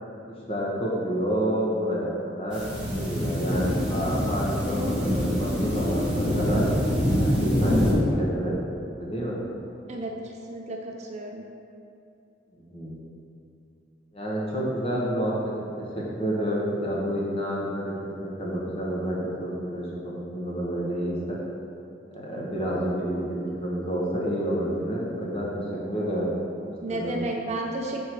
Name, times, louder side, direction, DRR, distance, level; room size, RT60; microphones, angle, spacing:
voice 1, 0.3-2.6 2.9-6.6 7.2-8.5 8.9-9.4 12.7-13.0 14.1-15.5 15.9-21.4 22.1-26.3 26.6-27.4, equal, 30° left, -5 dB, 1.1 m, -29 dB
sound 1, 2.5-7.9, equal, 5° right, 1.2 m, -25 dB
voice 2, 11.1-11.4 26.8-28.0, right 2 dB, 35° right, 0 dB, 0.5 m, -31 dB
6.1 x 3.6 x 4.5 m, 2.6 s
head